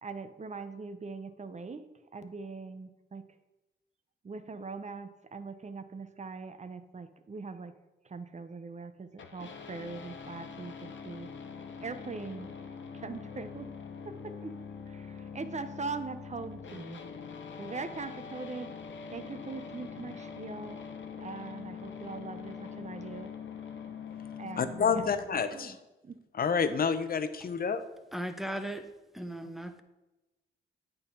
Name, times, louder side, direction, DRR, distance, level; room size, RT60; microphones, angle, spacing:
voice 1, 0.0-1.8 2.1-3.2 4.2-7.7 8.0-11.3 11.8-12.5 12.9-13.7 14.0-14.5 14.9-17.0 17.6-18.7 19.1-20.8 21.2-23.3 24.4-25.8 26.0-26.2, right 4 dB, 35° right, 0.7 m, -41 dB
sound 1, 9.2-25.2, left 6 dB, 70° left, 0.9 m, -44 dB
voice 2, 24.6-25.7 26.4-27.8, left 6 dB, 50° left, 0.7 m, -28 dB
voice 3, 28.1-28.9 29.1-29.8, right 1 dB, ahead, 0.8 m, -37 dB
8.8 x 3.9 x 5.6 m
supercardioid pair, 55°, 20 cm